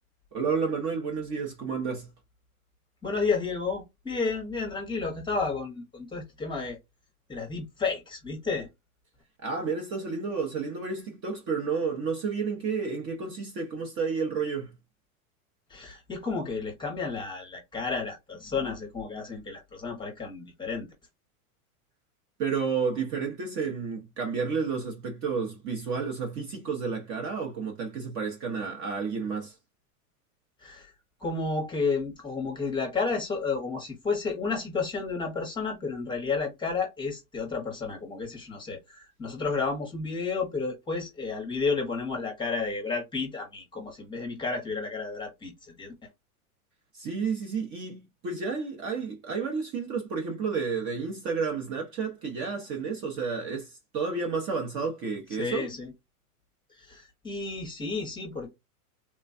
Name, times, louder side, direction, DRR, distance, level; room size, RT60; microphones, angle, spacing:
voice 1, 0.3-2.1 9.4-14.7 22.4-29.6 46.9-55.7, right 5 dB, 30° right, 0.6 m, -31 dB
voice 2, 3.0-6.8 7.3-8.7 15.7-20.9 30.6-30.9 31.2-45.9 55.4-55.9 56.7-58.5, left 4 dB, 10° left, 0.8 m, -31 dB
3.3 x 2.2 x 2.4 m
supercardioid pair, 140°, 45 cm